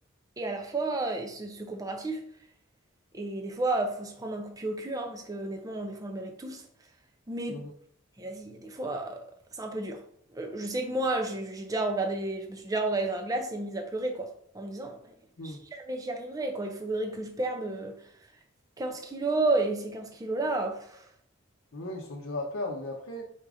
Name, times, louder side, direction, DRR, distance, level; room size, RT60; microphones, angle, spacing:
voice 1, 0.4-2.2 3.1-6.6 7.3-7.7 8.2-9.2 9.5-10.0 10.3-15.0 15.4-18.0 18.8-21.1, right 2 dB, 15° right, 0.4 m, -32 dB
voice 2, 21.7-23.3, left 2 dB, 65° left, 0.7 m, -36 dB
4.2 x 2.4 x 4.8 m
head